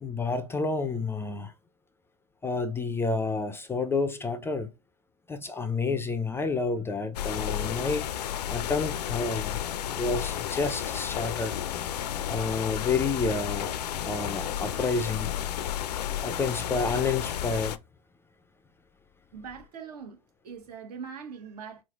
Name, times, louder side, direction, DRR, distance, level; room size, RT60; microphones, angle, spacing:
voice 1, 0.0-1.5 2.4-4.7 5.3-8.2 8.5-9.6 9.9-11.5 12.3-13.7 14.0-15.3 16.2-17.8, left 4 dB, 10° left, 0.3 m, -29 dB
sound 1, 7.1-17.8, left 11 dB, 80° left, 0.4 m, -32 dB
voice 2, 15.9-16.5 19.3-20.2 20.4-21.8, right 6 dB, 75° right, 1.1 m, -43 dB
3.8 x 3.2 x 2.3 m
hypercardioid pair, 100°, 20 cm